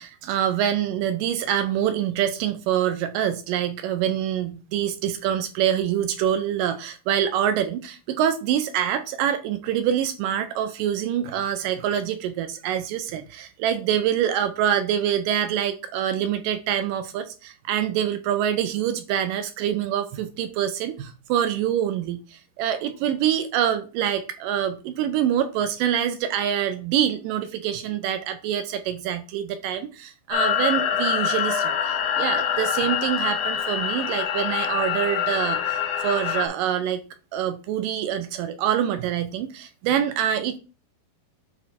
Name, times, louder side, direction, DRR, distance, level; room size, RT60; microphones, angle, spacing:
voice 1, 0.0-37.0 37.3-40.6, right 10 dB, 80° right, 9 dB, 2.1 m, -25 dB
sound 1, 30.3-36.5, left 9 dB, 70° left, 2.1 m, -25 dB
8.5 x 3.2 x 4.1 m, 0.33 s
omnidirectional pair, 4.1 m